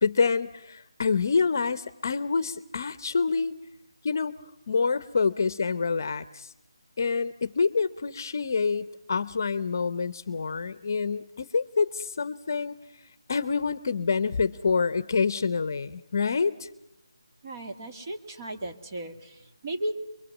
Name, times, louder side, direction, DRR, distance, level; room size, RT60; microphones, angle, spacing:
voice 1, 0.0-3.5 4.0-4.3 4.7-6.5 7.0-12.8 13.3-16.7, left 5 dB, 40° left, 15 dB, 0.8 m, -27 dB
voice 2, 17.4-19.9, right 1 dB, 30° right, 4 dB, 1.9 m, -35 dB
24.5 x 23.0 x 7.3 m, 0.81 s
figure-of-eight pair, 170°, 3 cm